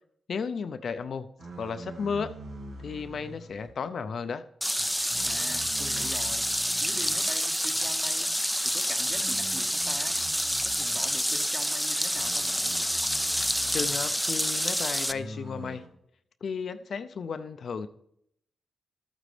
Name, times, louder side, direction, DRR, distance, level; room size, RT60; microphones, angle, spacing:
voice 1, 0.3-1.3 1.6-2.4 2.8-4.4 13.7-15.9 16.4-17.9, left 5 dB, 65° left, 10 dB, 0.5 m, -34 dB
sound 1, 1.4-3.7 4.8-7.2 7.7-8.0 9.0-11.2 12.1-14.1 15.1-15.9, right 1 dB, 85° right, 1.9 m, -45 dB
sound 2, 4.6-15.1, equal, ahead, 0.4 m, -28 dB
voice 2, 5.2-6.5 6.8-8.3 8.6-10.2 10.6-12.8, right 2 dB, 35° right, 4 dB, 1.5 m, -43 dB
12.5 x 9.0 x 3.3 m, 0.73 s
cardioid pair, 70°, 0 cm